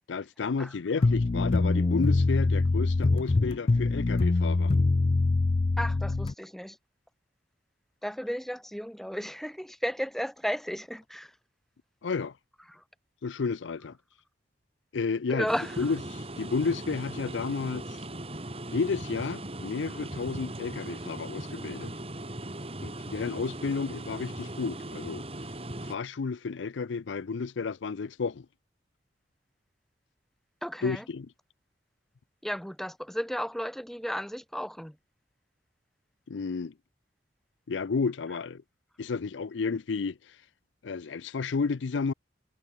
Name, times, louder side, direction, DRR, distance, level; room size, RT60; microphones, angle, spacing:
voice 1, 0.1-4.7 12.0-12.3 13.2-14.0 14.9-15.5 15.8-18.0 18.7-21.9 22.8-25.2 25.8-28.5 30.8-31.3 36.3-36.7 37.7-38.6 39.0-40.2 40.8-42.1, left 4 dB, 90° left, 0.5 m, -32 dB
sound 1, 1.0-6.3, left 3 dB, 35° left, 0.4 m, -24 dB
voice 2, 5.8-6.8 8.0-11.3 12.7-12.8 15.3-15.9 30.6-31.0 32.4-35.0, equal, ahead, 1.4 m, -34 dB
sound 2, 15.5-26.0, right 1 dB, 30° right, 3.2 m, -39 dB
head